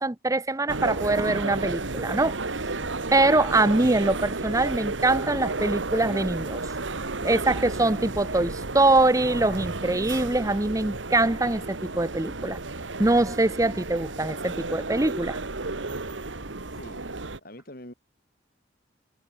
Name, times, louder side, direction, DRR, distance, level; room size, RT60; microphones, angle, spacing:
voice 1, 0.0-2.4 3.1-6.6 7.2-12.6 13.0-15.4, right 2 dB, 15° right, 0.7 m, -23 dB
sound 1, 0.7-17.4, right 3 dB, 85° right, 1.8 m, -32 dB
voice 2, 16.6-17.0 17.4-17.9, left 1 dB, 50° left, 5.0 m, -44 dB
head